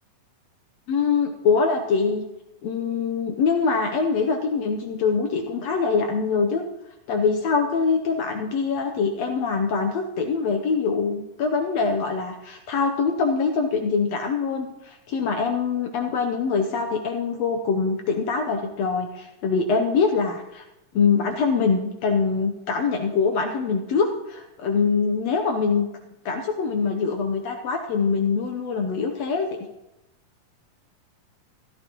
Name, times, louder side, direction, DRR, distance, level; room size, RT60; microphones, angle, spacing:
voice 1, 0.9-2.2 2.6-6.6 7.1-20.6 20.9-25.9 26.2-29.5, left 5 dB, 70° left, 4 dB, 1.6 m, -24 dB
15.5 x 13.0 x 3.0 m, 0.94 s
omnidirectional pair, 3.8 m